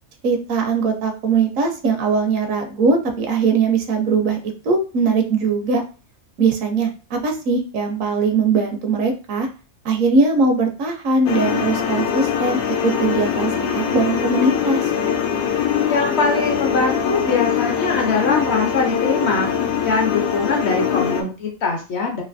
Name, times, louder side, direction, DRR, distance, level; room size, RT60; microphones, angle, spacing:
voice 1, 0.2-4.4 4.6-5.8 6.4-9.5 9.8-14.9, right 4 dB, 70° right, 4 dB, 1.0 m, -20 dB
sound 1, 11.3-21.2, left 8 dB, 80° left, 1.0 m, -22 dB
voice 2, 15.9-22.2, left 4 dB, 60° left, 1 dB, 0.8 m, -22 dB
3.2 x 2.5 x 2.5 m, 0.34 s
omnidirectional pair, 1.5 m